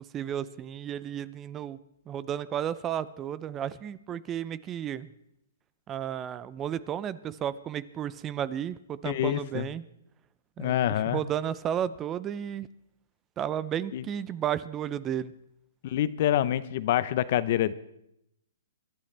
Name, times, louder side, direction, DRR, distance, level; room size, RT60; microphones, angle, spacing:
voice 1, 0.0-1.8 2.1-5.1 5.9-9.8 10.6-12.7 13.4-15.3, right 10 dB, 20° right, 18 dB, 0.5 m, -33 dB
voice 2, 9.0-9.7 10.6-11.2 13.9-14.1 15.8-17.7, left 12 dB, 50° left, 16 dB, 0.7 m, -26 dB
25.5 x 11.5 x 3.4 m, 0.78 s
hypercardioid pair, 140°, 0 cm